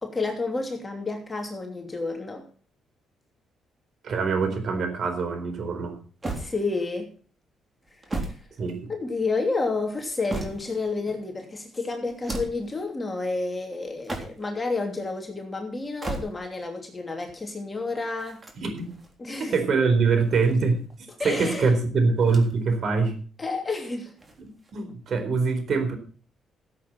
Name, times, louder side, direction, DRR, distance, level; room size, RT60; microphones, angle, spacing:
voice 1, 0.0-2.5 6.4-7.1 8.2-8.3 8.9-18.4 19.2-19.6 21.2-21.7 23.4-24.1, left 3 dB, 25° left, 3 dB, 2.9 m, -30 dB
voice 2, 4.0-5.9 8.6-8.9 18.5-18.9 19.5-20.8 21.2-23.2 24.4-26.0, right 4 dB, 55° right, 7 dB, 4.1 m, -24 dB
sound 1, 6.2-7.0 7.8-9.2 9.9-10.9 12.1-12.7 13.9-14.6 15.8-16.7 18.2-19.1 20.0-21.0 22.2-22.8 23.1-23.2 24.2-24.9, right 2 dB, 25° right, 3.5 m, -37 dB
15.0 x 8.3 x 5.6 m, 0.40 s
cardioid pair, 90°, 0 cm